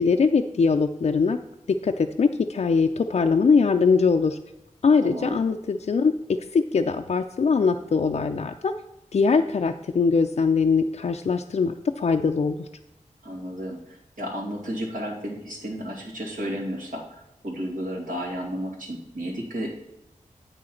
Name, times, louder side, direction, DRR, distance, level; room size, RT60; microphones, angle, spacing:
voice 1, 0.0-1.4 1.7-4.4 4.8-6.1 6.5-8.7 9.1-12.7, left 5 dB, 50° left, 4 dB, 0.4 m, -22 dB
voice 2, 5.0-5.4 13.2-19.8, equal, 85° right, -3 dB, 2.4 m, -33 dB
8.3 x 6.3 x 4.3 m, 0.90 s
wide cardioid pair, 95°, 14 cm